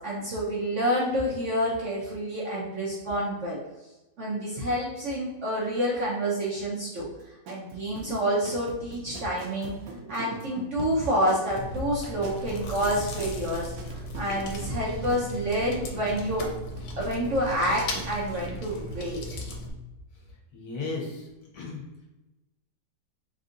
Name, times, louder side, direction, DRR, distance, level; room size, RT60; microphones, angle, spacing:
voice 1, 0.0-3.6 4.2-7.1 7.5-9.7 10.0-13.7 14.2-16.5 17.0-19.2, equal, 55° right, -5 dB, 0.9 m, -28 dB
sound 1, 7.0-18.6 18.9-19.0, right 4 dB, 80° right, 1.3 m, -42 dB
Chewing mastication, 11.6-19.7, left 1 dB, 85° left, 1.4 m, -37 dB
voice 2, 20.5-22.1, left 3 dB, 60° left, -3 dB, 1.4 m, -36 dB
3.7 x 2.6 x 3.8 m, 1.0 s
omnidirectional pair, 1.9 m